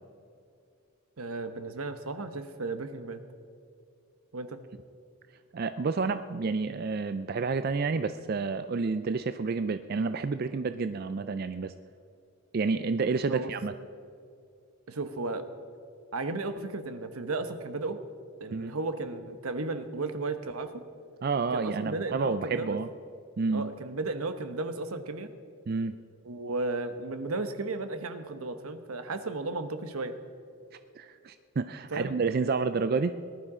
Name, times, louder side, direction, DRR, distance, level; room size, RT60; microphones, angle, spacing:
voice 1, 1.2-3.2 4.3-4.6 13.3-13.5 14.9-15.5 16.1-18.0 18.4-20.8 21.5-22.8 23.5-25.3 26.2-30.2 31.9-32.1, right 3 dB, 80° right, 10 dB, 1.0 m, -34 dB
voice 2, 5.5-11.7 12.5-13.7 18.5-18.7 21.2-22.9 23.4-23.7 25.7-26.0 31.0-33.1, right 4 dB, 45° right, 11 dB, 0.4 m, -29 dB
19.0 x 11.5 x 4.9 m, 2.4 s
head